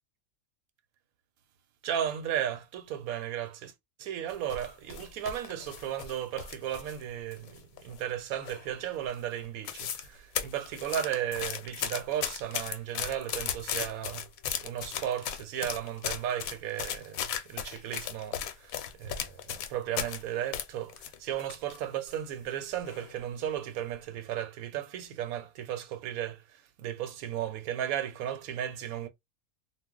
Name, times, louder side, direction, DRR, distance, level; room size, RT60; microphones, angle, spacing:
voice 1, 1.8-3.7 4.0-14.3 14.6-29.1, right 10 dB, 85° right, 1.0 m, -35 dB
sound 1, 4.3-7.0 7.3-8.1 8.4-8.8 9.1-9.2 9.4-10.1 10.4-20.2 20.5-21.8 22.1-22.2 22.8-23.2 23.6-23.8, left 9 dB, 85° left, 1.0 m, -36 dB
2.3 x 2.1 x 3.6 m
omnidirectional pair, 1.5 m